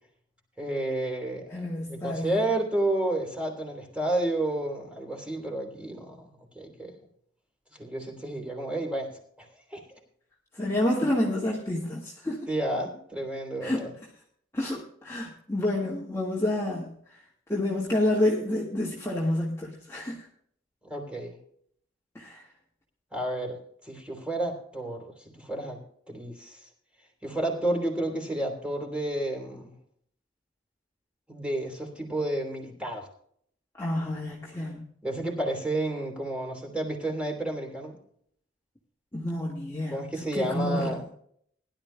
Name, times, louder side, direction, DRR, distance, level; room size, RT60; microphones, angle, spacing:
voice 1, 0.6-6.3 6.5-6.9 7.7-9.1 9.4-9.8 12.5-13.9 20.8-21.4 23.1-25.8 26.1-26.7 27.2-29.7 31.3-33.1 35.0-38.0 39.9-41.0, right 1 dB, 5° right, 1 dB, 3.2 m, -31 dB
voice 2, 1.5-2.4 10.5-12.5 13.6-13.9 14.5-17.2 17.5-20.3 22.1-22.4 33.8-34.9 39.1-41.0, left 1 dB, 15° left, -4 dB, 1.8 m, -29 dB
20.5 x 12.0 x 2.3 m, 0.65 s
head